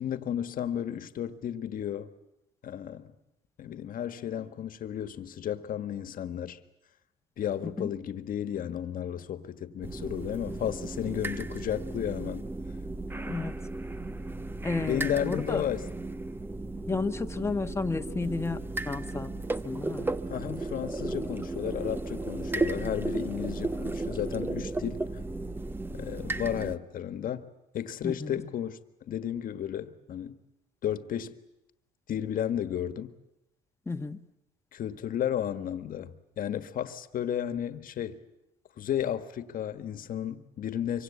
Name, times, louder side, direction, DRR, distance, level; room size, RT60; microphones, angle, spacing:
voice 1, 0.0-2.1 2.6-3.1 3.6-6.6 7.4-12.5 14.8-15.9 20.3-25.2 25.9-27.5 27.7-28.8 29.1-30.4 30.8-31.3 32.1-33.1 34.7-38.2 38.8-41.0, left 10 dB, 55° left, 1.6 m, -33 dB
sound 1, 9.8-26.8, right 2 dB, 10° right, 0.9 m, -35 dB
voice 2, 14.6-15.6 16.9-19.3 19.6-20.1 28.0-28.4 33.9-34.2, left 3 dB, 15° left, 1.3 m, -32 dB
25.0 x 24.5 x 8.5 m
cardioid pair, 110°, 17 cm